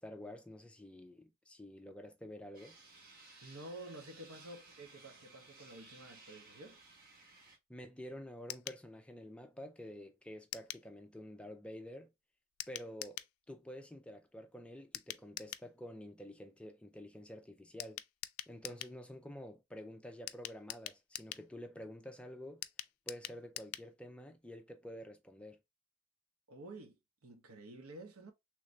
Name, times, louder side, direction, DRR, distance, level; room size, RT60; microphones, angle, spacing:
voice 1, 0.0-2.8 7.7-12.1 12.7-18.0 18.5-22.7 23.1-25.6, equal, 5° left, 0.4 m, -49 dB
sound 1, 2.5-7.6, right 3 dB, 45° right, 1.2 m, -58 dB
voice 2, 3.4-6.8 26.5-28.3, right 1 dB, 85° right, 0.8 m, -51 dB
sound 2, 8.5-8.8 10.5-10.9 12.6-13.3 14.9-15.7 17.8-19.0 20.3-21.5 22.6-23.9 24.2-24.3 24.5-24.6, left 15 dB, 80° left, 0.3 m, -45 dB
3.2 x 2.6 x 3.0 m
head